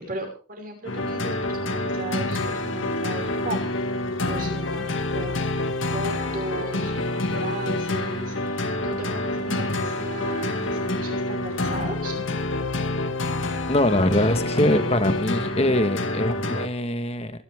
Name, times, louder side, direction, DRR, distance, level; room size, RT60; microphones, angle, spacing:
voice 1, 0.0-3.7 4.3-5.7 5.9-12.1, right 1 dB, 45° right, 2 dB, 5.9 m, -36 dB
sound 1, 0.8-16.7, left 2 dB, 80° left, 2.2 m, -27 dB
voice 2, 13.7-17.3, left 1 dB, 30° left, 9 dB, 1.5 m, -23 dB
25.5 x 12.0 x 3.6 m, 0.37 s
head